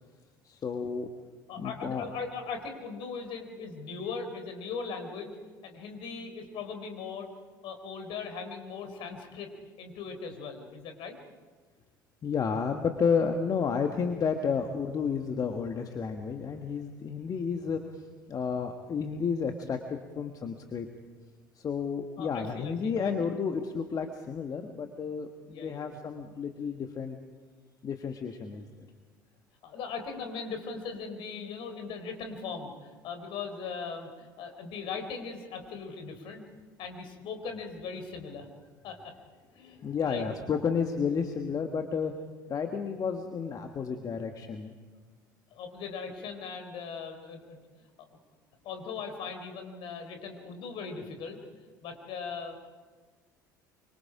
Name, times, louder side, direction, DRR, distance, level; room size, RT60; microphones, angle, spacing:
voice 1, 0.4-1.1 1.6-2.1 12.2-20.9 21.5-27.2 27.8-28.7 39.8-42.1 42.5-44.7, left 6 dB, 35° left, 6 dB, 1.5 m, -31 dB
voice 2, 1.5-5.4 5.6-7.3 7.6-9.5 9.8-11.2 22.2-23.1 25.5-26.0 29.6-36.4 36.8-38.5 38.8-39.1 39.6-40.3 45.5-47.6 48.0-48.1 48.6-51.4 51.8-52.7, left 5 dB, 50° left, 6 dB, 3.7 m, -39 dB
26.0 x 24.5 x 5.0 m, 1.4 s
figure-of-eight pair, 60°, 11 cm